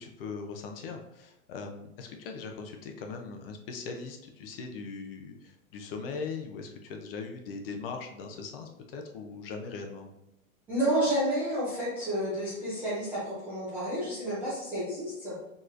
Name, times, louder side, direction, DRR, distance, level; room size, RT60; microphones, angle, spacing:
voice 1, 0.0-10.1, left 4 dB, 40° left, 4 dB, 0.6 m, -40 dB
voice 2, 10.7-15.3, right 1 dB, 5° right, -12 dB, 0.4 m, -30 dB
4.6 x 3.1 x 2.4 m, 0.90 s
hypercardioid pair, 145°, 43 cm